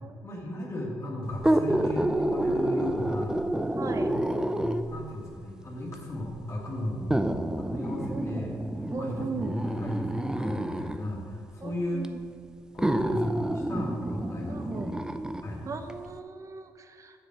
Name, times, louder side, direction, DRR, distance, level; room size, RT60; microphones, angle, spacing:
voice 1, 0.2-3.4 3.8-8.5 8.9-12.1 12.7-14.9 15.4-15.6, left 1 dB, 40° left, -4 dB, 2.2 m, -35 dB
sound 1, 1.3-5.0 5.9-6.0 7.1-11.0 12.0-12.1 12.8-15.5 15.9-16.0, right 1 dB, 10° right, 0.6 m, -29 dB
voice 2, 3.8-4.1 8.1-8.5 8.9-9.6 11.6-12.2 14.5-15.0 15.6-17.2, right 4 dB, 45° right, 7 dB, 0.8 m, -37 dB
7.1 x 6.7 x 6.0 m, 2.2 s
supercardioid pair, 60°, 8 cm